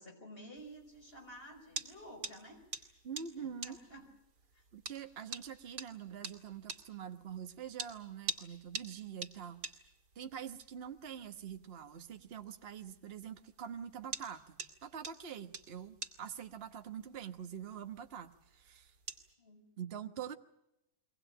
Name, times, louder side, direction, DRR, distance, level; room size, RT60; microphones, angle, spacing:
voice 1, 0.0-2.9 3.4-4.1 4.5-4.6 19.4-19.7, equal, 35° left, 3 dB, 5.8 m, -52 dB
sound 1, 0.6-19.3, right 4 dB, 85° right, 2.9 m, -48 dB
voice 2, 3.0-3.8 4.7-9.6 10.1-18.9 19.8-20.3, right 8 dB, 40° right, 7 dB, 1.4 m, -45 dB
23.5 x 19.0 x 8.9 m, 0.87 s
omnidirectional pair, 1.8 m